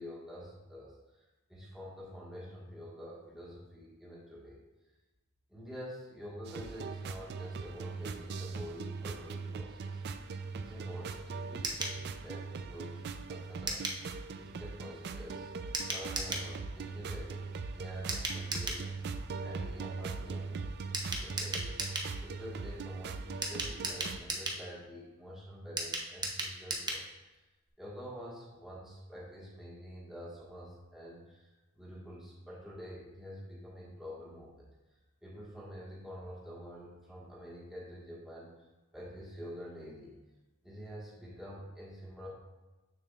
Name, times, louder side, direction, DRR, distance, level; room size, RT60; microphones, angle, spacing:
voice 1, 0.0-4.6 5.5-10.3 10.5-15.5 15.9-19.0 19.4-20.6 20.9-27.4 27.8-34.7 35.2-38.7 38.9-40.1 40.6-42.3, equal, 5° right, -7 dB, 1.3 m, -47 dB
sound 1, 6.4-24.2, right 4 dB, 50° right, 0.3 m, -40 dB
sound 2, 11.6-12.0 13.7-14.0 15.7-16.5 18.1-18.8 20.9-22.1 23.4-24.6 25.8-27.0 27.3-27.4 27.7-27.8, right 2 dB, 20° right, 0.7 m, -36 dB
6.9 x 6.7 x 2.3 m, 1.1 s
head